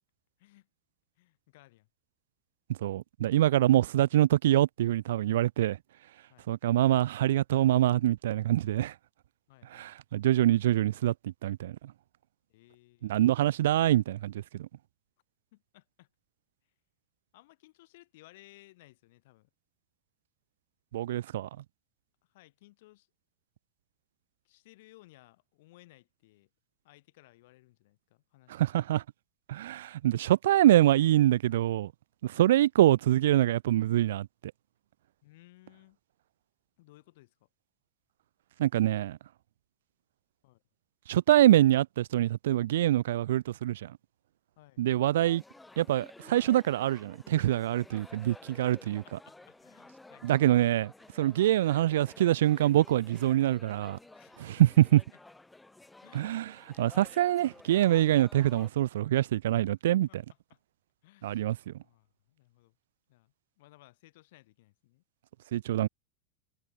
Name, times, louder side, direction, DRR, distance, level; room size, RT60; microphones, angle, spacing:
voice 1, 1.2-1.9 6.3-6.5 9.5-9.9 12.5-13.3 15.5-16.1 17.3-19.5 22.2-23.1 24.4-26.5 26.8-28.9 32.3-32.5 35.2-36.0 36.8-37.5 40.4-40.6 44.6-44.8 48.6-50.4 54.1-54.7 55.1-55.2 56.0-56.4 60.1-60.2 60.5-60.6 61.0-61.5 61.8-62.8 63.1-65.0, left 19 dB, 55° left, 4.3 m, -59 dB
voice 2, 2.7-5.8 6.5-8.9 9.7-11.8 13.0-14.7 20.9-21.5 28.5-29.0 29.5-31.9 32.2-34.3 38.6-39.2 41.1-43.9 44.8-45.4 45.8-49.0 50.2-50.9 51.2-54.0 54.4-55.0 56.1-56.5 56.8-60.1 61.2-61.7 65.5-65.9, right 13 dB, 80° right, 0.4 m, -25 dB
sound 1, 45.2-58.7, left 2 dB, 5° left, 4.4 m, -53 dB
supercardioid pair, 180°, 0 cm